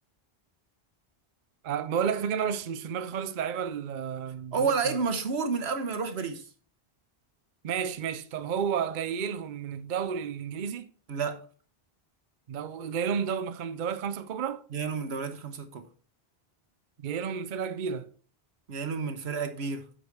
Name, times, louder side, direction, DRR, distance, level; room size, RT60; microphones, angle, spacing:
voice 1, 1.6-5.0 7.6-10.9 12.5-14.6 17.0-18.1, right 7 dB, 55° right, 0.7 m, -31 dB
voice 2, 4.5-6.5 11.1-11.4 14.7-15.9 18.7-19.9, right 5 dB, 80° right, 1.3 m, -30 dB
9.0 x 5.1 x 4.7 m
omnidirectional pair, 1.1 m